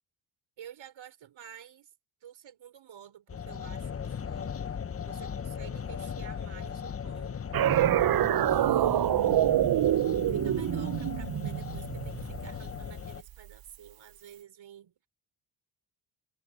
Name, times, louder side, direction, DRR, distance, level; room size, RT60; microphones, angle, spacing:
voice 1, 0.6-1.9 2.2-7.4 8.5-9.8 10.3-15.1, right 10 dB, 70° right, 4.9 m, -51 dB
sound 1, 3.3-13.2, left 7 dB, 30° left, 0.8 m, -38 dB
sound 2, 7.5-12.9, right 12 dB, 50° right, 0.6 m, -26 dB
cardioid pair, 70°, 48 cm